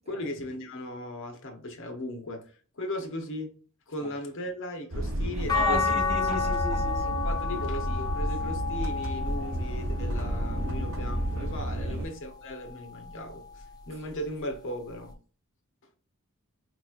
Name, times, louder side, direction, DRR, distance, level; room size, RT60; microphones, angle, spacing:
voice 1, 0.1-3.5 3.9-5.8 7.2-15.1, left 1 dB, 60° left, 0.8 m, -37 dB
sound 1, 4.9-12.1, right 1 dB, 65° right, 0.7 m, -31 dB
sound 2, 5.5-11.8 12.4-13.7 15.1-15.2, left 5 dB, 20° left, 0.6 m, -32 dB
voice 2, 5.5-7.2 11.8-12.1, equal, 30° right, 0.9 m, -35 dB
4.4 x 2.9 x 2.4 m
head